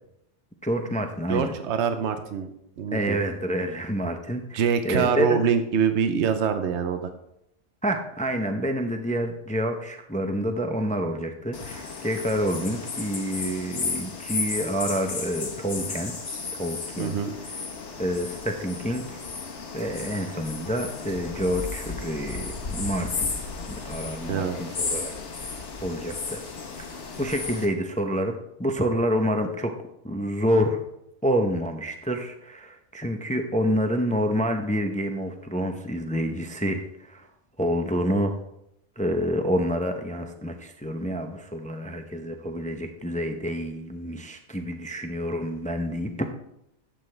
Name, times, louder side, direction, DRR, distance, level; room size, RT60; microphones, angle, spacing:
voice 1, 0.6-1.5 2.9-5.4 7.8-16.1 16.6-17.2 18.0-19.2 19.7-23.3 23.7-25.6 25.8-26.4 26.8-26.9 27.2-29.7 30.0-30.8 31.2-37.3 37.6-38.3 39.0-46.3, equal, 10° left, 5 dB, 0.6 m, -28 dB
voice 2, 1.3-2.5 2.8-3.2 4.5-7.1 17.0-17.3 24.3-24.8, right 7 dB, 75° right, 8 dB, 1.0 m, -25 dB
sound 1, 11.5-27.7, left 4 dB, 75° left, 1.5 m, -34 dB
11.5 x 7.8 x 3.3 m, 0.80 s
omnidirectional pair, 1.2 m